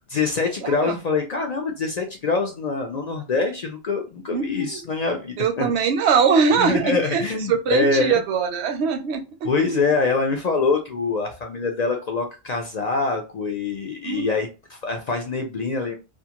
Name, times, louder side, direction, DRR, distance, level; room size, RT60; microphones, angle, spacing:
voice 1, 0.1-5.7 6.6-8.2 9.4-15.9, left 4 dB, 55° left, 0.5 m, -24 dB
voice 2, 0.6-1.0 4.3-4.8 5.4-7.2 7.5-9.9 14.0-14.4, right 6 dB, 75° right, 0.8 m, -22 dB
2.4 x 2.4 x 2.8 m
omnidirectional pair, 1.1 m